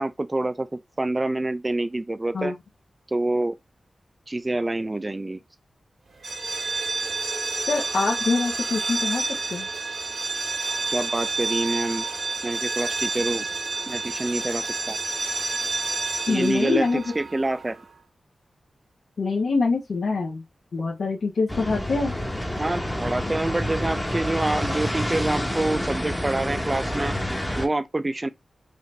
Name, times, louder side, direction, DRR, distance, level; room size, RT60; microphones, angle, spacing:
voice 1, 0.0-2.5 3.1-3.6 4.3-5.4 10.9-12.0 12.4-13.5 13.9-15.0 16.3-17.8 22.6-27.2 27.6-28.3, right 2 dB, 25° right, 0.4 m, -27 dB
sound 1, 6.2-17.9, right 3 dB, 65° right, 1.2 m, -29 dB
voice 2, 7.7-9.2 9.5-9.7 16.3-17.0 19.2-20.4 20.7-22.1, left 4 dB, 90° left, 1.0 m, -24 dB
sound 2, 21.5-27.7, equal, 10° left, 0.8 m, -28 dB
5.1 x 2.6 x 3.2 m
wide cardioid pair, 125°, 0 cm